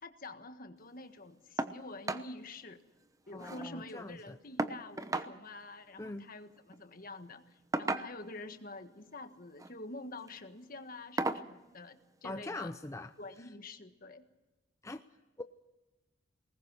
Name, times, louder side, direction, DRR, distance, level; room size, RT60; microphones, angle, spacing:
voice 1, 0.0-2.8 3.3-12.7 13.2-14.2, left 2 dB, 50° left, 8 dB, 1.5 m, -47 dB
sound 1, 1.6-1.8 2.1-2.3 2.7-2.8 3.0-3.7 4.6-5.3 6.6-6.8 7.7-8.4 9.4-9.7 10.2-10.4 11.2-11.5 12.8-12.9 13.4-13.5, right 2 dB, 20° right, 0.9 m, -35 dB
voice 2, 3.3-4.4 6.0-6.3 12.2-13.1 13.4-13.5 14.8-15.0 15.4-15.5, left 2 dB, 15° left, 8 dB, 0.6 m, -42 dB
22.5 x 19.5 x 6.2 m, 1.1 s
head